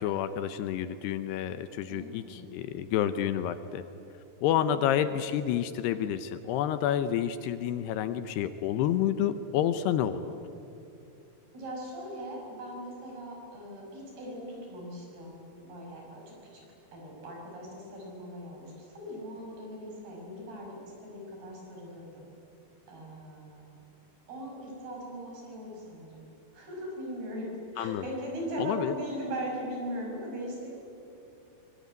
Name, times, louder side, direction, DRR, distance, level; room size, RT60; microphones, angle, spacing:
voice 1, 0.0-3.8 4.4-10.3 27.8-28.1 28.6-28.9, left 10 dB, 75° left, 11 dB, 2.7 m, -29 dB
voice 2, 1.9-2.5 11.5-16.6 16.9-22.3 22.9-23.7 24.3-26.3 26.5-30.7, equal, 60° right, -1 dB, 8.0 m, -39 dB
24.0 x 23.0 x 9.4 m, 2.8 s
omnidirectional pair, 5.1 m